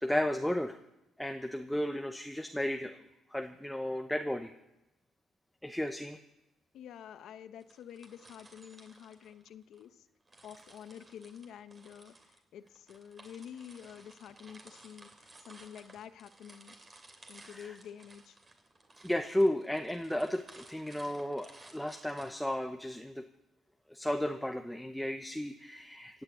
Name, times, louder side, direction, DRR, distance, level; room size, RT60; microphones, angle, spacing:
voice 1, 0.0-0.7 1.2-3.0 3.3-4.5 5.6-6.2 17.5-17.8 19.0-23.2 23.9-26.2, left 1 dB, 5° left, 6 dB, 0.9 m, -33 dB
voice 2, 6.7-10.1 10.4-12.1 12.5-15.1 15.5-16.7 17.3-18.4, left 9 dB, 70° left, 11 dB, 1.0 m, -49 dB
sound 1, 7.6-9.9 10.3-23.0, right 2 dB, 30° right, 3.0 m, -57 dB
16.5 x 8.9 x 9.3 m, 0.95 s
cardioid pair, 90°, 0 cm